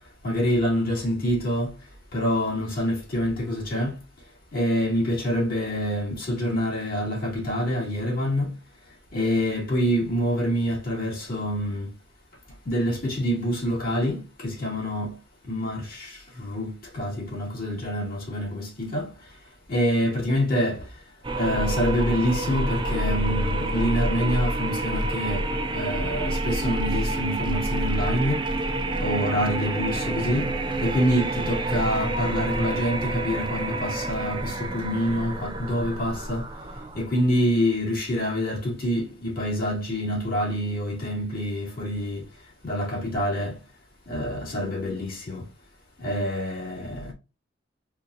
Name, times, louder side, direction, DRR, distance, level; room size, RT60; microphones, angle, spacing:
voice 1, 0.2-1.8 2.1-4.0 4.5-8.6 9.1-11.9 12.6-15.2 15.4-19.1 19.7-20.9 21.3-28.5 29.0-36.5 36.9-42.3 42.6-43.6 44.1-45.5 46.0-47.1, equal, 50° left, 2.5 m, -26 dB
sound 1, 21.2-37.1, right 2 dB, 25° right, 0.6 m, -28 dB
4.5 x 4.2 x 2.6 m
head